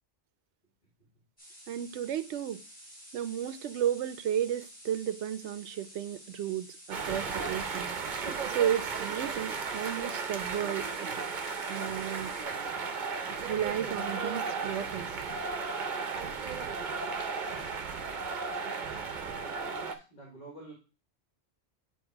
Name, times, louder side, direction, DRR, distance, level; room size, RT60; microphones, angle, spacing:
sound 1, 1.4-12.4, equal, 5° left, 2.8 m, -52 dB
voice 1, 1.7-2.6 3.1-8.0 8.5-11.3 11.7-12.3 13.4-15.1, right 10 dB, 85° right, 0.9 m, -33 dB
sound 2, 6.9-20.0, right 5 dB, 50° right, 0.8 m, -35 dB
voice 2, 19.7-20.7, right 2 dB, 50° left, 2.1 m, -48 dB
8.8 x 3.0 x 4.5 m
omnidirectional pair, 1.1 m